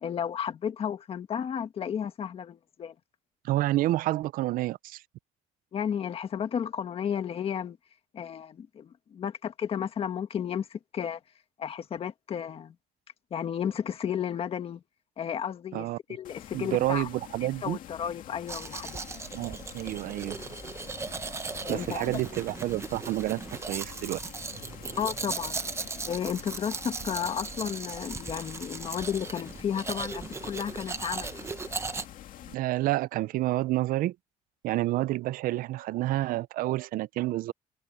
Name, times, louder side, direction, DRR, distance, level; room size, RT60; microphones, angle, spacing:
voice 1, 0.0-2.9 5.7-7.8 8.1-11.2 11.6-12.7 13.3-14.8 15.2-17.1 17.4-19.0 21.5-22.2 25.0-25.6 26.0-31.4, left 8 dB, 40° left, 1.7 m, -33 dB
voice 2, 3.4-5.0 15.7-16.0 16.5-17.8 19.3-20.4 21.7-24.2 32.5-34.2 34.6-37.5, right 16 dB, 75° right, 0.4 m, -29 dB
sound 1, 16.2-32.5, left 12 dB, 70° left, 2.2 m, -47 dB
Domestic sounds home sounds, 18.5-32.1, right 4 dB, 20° right, 0.8 m, -38 dB
cardioid pair, 160°, 15 cm